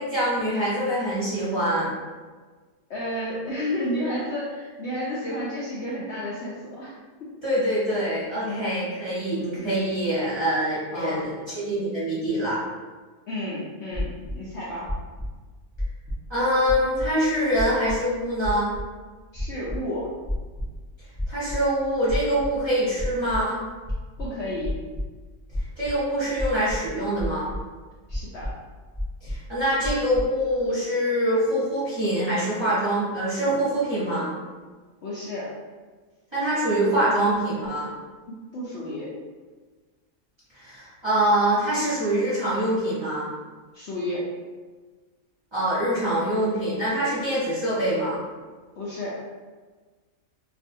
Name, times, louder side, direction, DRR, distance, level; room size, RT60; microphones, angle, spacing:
voice 1, 0.0-1.9 7.4-12.6 16.3-18.7 21.3-23.6 25.8-27.5 29.2-34.3 36.3-37.9 40.5-43.3 45.5-48.2, right 1 dB, 25° right, -12 dB, 0.9 m, -24 dB
voice 2, 2.9-7.3 8.4-8.7 9.5-9.9 10.9-11.2 13.3-14.9 19.3-20.1 24.2-24.8 28.1-28.6 35.0-35.5 38.3-39.1 43.7-44.3 48.8-49.2, left 1 dB, 65° left, -7 dB, 0.8 m, -32 dB
sound 1, 13.9-14.3 14.8-15.3 15.7-16.3 16.6-17.1 17.5-18.0 18.4-18.8 19.3-19.8 20.2-20.8 21.1-21.6 22.1-22.6 22.9-23.4 23.8-25.0 25.5-25.9 26.4-26.9 27.2-27.6 28.1-28.5 28.9-29.5 29.8-30.2, left 1 dB, 30° left, 0.3 m, -30 dB
2.5 x 2.3 x 2.6 m, 1.4 s
omnidirectional pair, 1.5 m